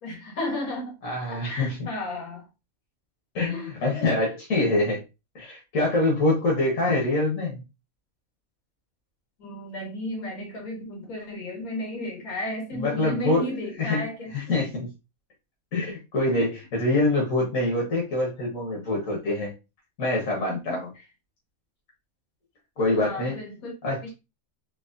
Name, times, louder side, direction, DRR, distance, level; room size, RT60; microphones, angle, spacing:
voice 1, 0.0-1.0 1.3-2.5 3.5-3.7 9.4-14.3 20.5-20.9 23.0-23.7 24.0-24.1, left 1 dB, 85° left, 1.9 m, -33 dB
voice 2, 1.0-1.9 3.3-5.0 5.3-7.6 12.7-13.4 13.8-14.1 14.3-14.9 15.7-19.5 20.0-20.9 22.8-23.4 23.8-24.1, left 2 dB, 70° left, 1.5 m, -25 dB
4.0 x 3.0 x 2.5 m
omnidirectional pair, 1.5 m